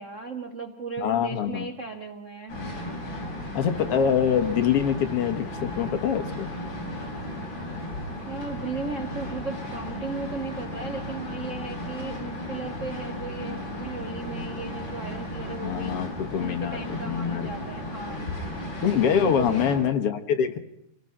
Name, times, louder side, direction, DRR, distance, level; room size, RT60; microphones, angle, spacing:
voice 1, 0.0-2.6 8.2-16.0 16.4-18.3 19.2-19.8, right 3 dB, 40° right, 5 dB, 1.2 m, -36 dB
voice 2, 1.0-1.7 3.6-6.5 15.6-17.5 18.8-20.6, left 8 dB, 60° left, 7 dB, 1.9 m, -25 dB
sound 1, 2.5-19.8, left 1 dB, 35° left, 5.6 m, -35 dB
25.5 x 19.0 x 5.8 m, 0.77 s
omnidirectional pair, 3.6 m